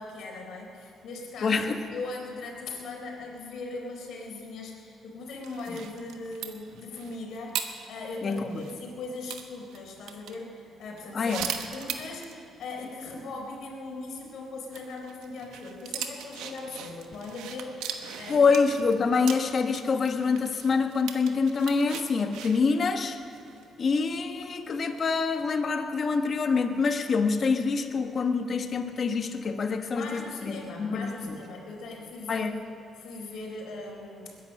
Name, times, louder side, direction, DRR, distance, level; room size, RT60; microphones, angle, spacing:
voice 1, 0.0-18.5 29.9-32.5 33.0-34.4, left 3 dB, 75° left, 0 dB, 4.2 m, -39 dB
voice 2, 1.4-1.8 5.7-5.8 8.2-8.6 11.1-11.5 18.3-23.2 23.8-31.4 32.3-32.6, left 4 dB, 45° left, 6 dB, 1.3 m, -26 dB
sound 1, 5.4-8.8 9.3-10.4 11.0-12.4 12.7-12.8 13.1-13.2 14.7-24.1 24.7-25.0, right 9 dB, 90° right, 1.2 m, -39 dB
21.0 x 10.5 x 6.6 m, 2.7 s
cardioid pair, 90°, 0 cm